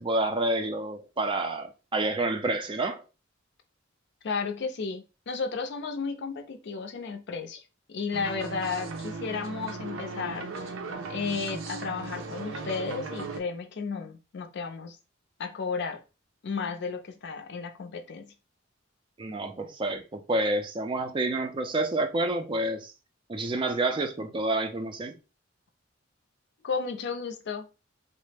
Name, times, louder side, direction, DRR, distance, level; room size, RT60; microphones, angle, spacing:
voice 1, 0.0-3.0 19.2-22.9 23.3-25.1, right 2 dB, 25° right, 0.4 m, -28 dB
voice 2, 4.2-7.6 7.9-10.7 11.1-15.0 15.4-16.0 16.4-18.3 26.6-27.7, left 5 dB, 60° left, 0.5 m, -33 dB
sound 1, 8.1-13.4, right 3 dB, 80° right, 0.5 m, -37 dB
3.1 x 2.0 x 3.2 m
head